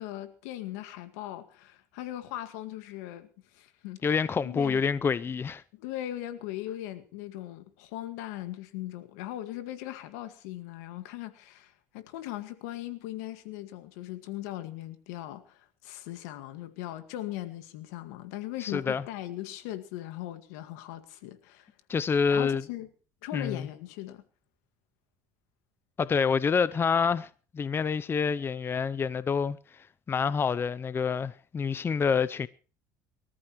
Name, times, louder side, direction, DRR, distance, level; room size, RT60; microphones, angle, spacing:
voice 1, 0.0-4.1 4.4-4.8 5.7-21.7 22.3-22.9 23.2-24.2, left 14 dB, 90° left, 1.9 m, -39 dB
voice 2, 4.0-5.6 18.6-19.0 21.9-22.6 23.3-23.7 26.0-32.5, left 6 dB, 25° left, 0.6 m, -27 dB
24.0 x 14.0 x 3.2 m
supercardioid pair, 100°, 8 cm